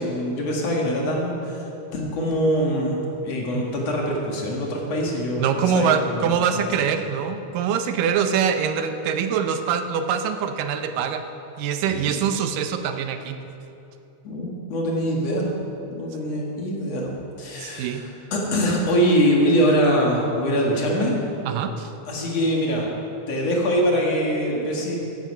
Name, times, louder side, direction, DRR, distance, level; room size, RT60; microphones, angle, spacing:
voice 1, 0.0-1.6 1.9-6.7 11.9-12.2 14.2-15.5 15.9-17.1 17.4-21.2 22.1-22.9 23.3-25.0, equal, 55° left, -2 dB, 2.8 m, -23 dB
voice 2, 5.4-11.2 11.6-13.4 17.6-18.0 21.4-21.9, right 7 dB, 85° right, 8 dB, 2.4 m, -24 dB
14.5 x 11.0 x 5.5 m, 2.9 s
omnidirectional pair, 3.8 m